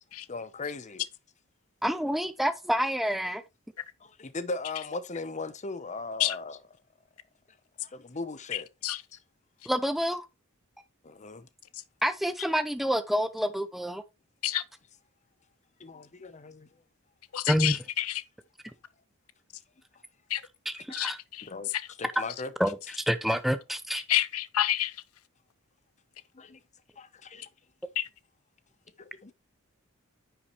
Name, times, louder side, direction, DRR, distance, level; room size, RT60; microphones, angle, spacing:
voice 1, 0.3-1.0 4.0-6.6 7.8-8.7 9.1-9.2 11.0-11.5 15.8-16.7 21.4-21.7 22.0-22.5 26.3-26.6 27.0-27.5 29.0-29.3, left 3 dB, 35° left, 0.8 m, -38 dB
voice 2, 1.8-3.4 9.7-10.3 12.0-14.0 17.5-17.8 20.7-21.2 22.0-22.2 22.6-24.0, equal, ahead, 0.6 m, -28 dB
voice 3, 17.3-18.1 20.3-20.4 20.9-21.4 24.1-24.9 28.0-28.1, left 13 dB, 80° left, 0.7 m, -28 dB
9.8 x 5.8 x 3.1 m
head